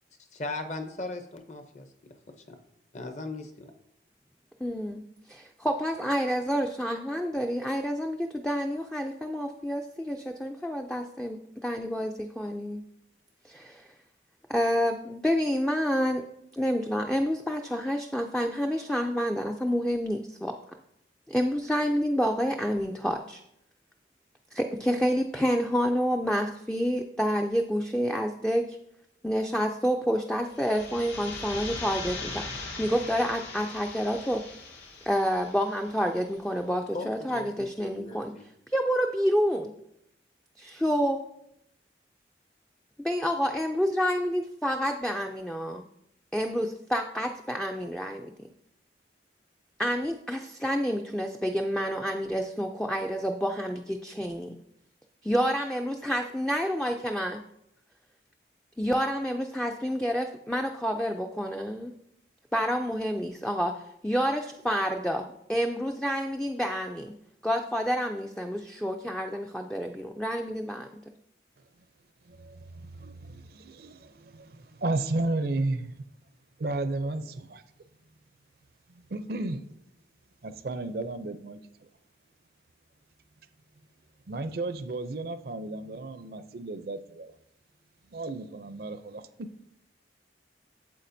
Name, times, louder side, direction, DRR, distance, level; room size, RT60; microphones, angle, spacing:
voice 1, 0.3-1.9 2.5-2.6 2.9-3.7 36.9-38.5, left 2 dB, 40° left, 7 dB, 0.7 m, -38 dB
voice 2, 4.6-12.8 13.4-13.9 14.5-16.2 16.5-20.5 21.3-23.4 24.5-28.8 29.2-34.4 35.0-38.3 38.7-39.7 40.6-41.2 43.0-45.9 46.3-48.3 49.8-54.5 55.2-57.4 58.8-61.9 62.5-67.1 67.4-70.9, equal, 5° left, 3 dB, 0.3 m, -28 dB
sound 1, 30.4-36.1, left 3 dB, 85° left, 1.7 m, -40 dB
voice 3, 72.2-76.0 76.6-77.6 78.9-79.6 80.4-81.6 84.3-87.3 88.1-89.5, right 2 dB, 55° right, 11 dB, 0.5 m, -33 dB
8.3 x 7.7 x 2.6 m, 0.78 s
head